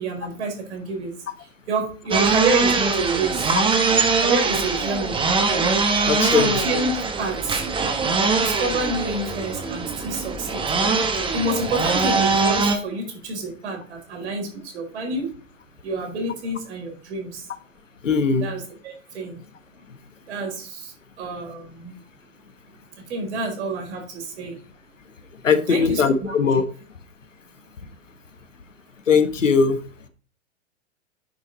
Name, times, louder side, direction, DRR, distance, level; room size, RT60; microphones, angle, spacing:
voice 1, 0.0-3.5 4.2-5.2 6.1-7.7 8.4-10.7 11.3-15.3 15.8-17.5 18.4-19.4 20.2-21.9 23.0-24.6 25.5-26.4, right 2 dB, 65° right, 1 dB, 4.6 m, -28 dB
sound 1, 2.1-12.8, right 4 dB, 15° right, 1.4 m, -22 dB
voice 2, 6.0-6.5 18.0-18.5 25.4-26.6 29.1-29.8, left 5 dB, 80° left, 10 dB, 1.4 m, -19 dB
9.7 x 5.9 x 4.0 m, 0.41 s
figure-of-eight pair, 105°, 37 cm